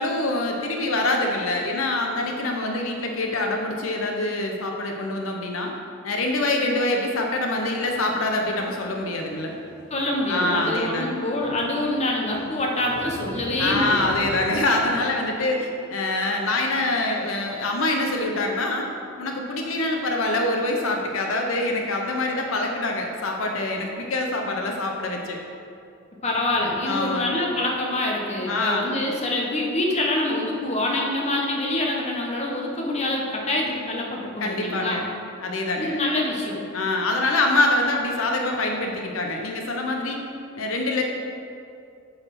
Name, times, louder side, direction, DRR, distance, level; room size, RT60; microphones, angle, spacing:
voice 1, 0.0-5.7 6.0-9.5 10.3-11.2 13.6-18.9 19.2-25.4 26.8-27.4 28.5-28.8 34.4-35.0 35.4-36.0 36.7-40.2 40.6-41.0, left 2 dB, 75° left, 2 dB, 0.7 m, -25 dB
sound 1, 7.6-15.1, right 1 dB, 90° right, 1.2 m, -40 dB
voice 2, 9.9-14.1 26.2-35.0 35.8-36.6, left 1 dB, 35° left, -1 dB, 1.0 m, -25 dB
7.9 x 4.1 x 5.8 m, 2.5 s
head